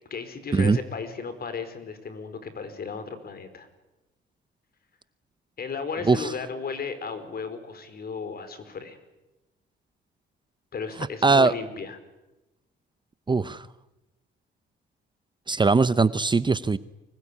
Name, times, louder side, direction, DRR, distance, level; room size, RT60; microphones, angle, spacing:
voice 1, 0.1-3.7 5.6-9.0 10.7-12.0, left 5 dB, 50° left, 10 dB, 4.7 m, -35 dB
voice 2, 11.2-11.5 13.3-13.6 15.5-16.8, right 4 dB, 25° right, 15 dB, 0.8 m, -20 dB
25.0 x 21.0 x 9.9 m, 0.99 s
cardioid pair, 90°, 20 cm